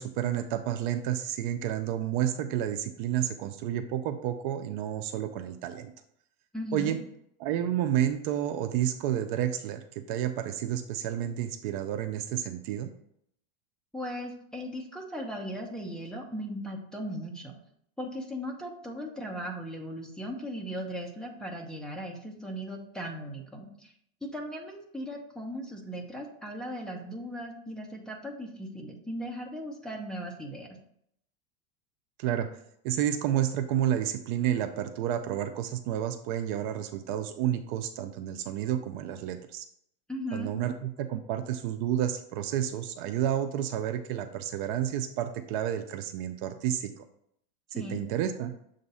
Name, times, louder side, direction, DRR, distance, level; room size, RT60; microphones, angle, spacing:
voice 1, 0.0-5.9 6.7-7.0 7.4-12.9 32.2-32.5 32.8-39.6 40.3-40.7 41.0-47.0 47.7-48.5, right 11 dB, 55° right, 8 dB, 0.6 m, -30 dB
voice 2, 6.5-7.0 13.9-17.6 18.0-23.9 24.2-30.7 40.1-40.5 47.7-48.0, equal, ahead, 0 dB, 0.9 m, -38 dB
7.0 x 2.6 x 5.4 m, 0.70 s
supercardioid pair, 140°, 30 cm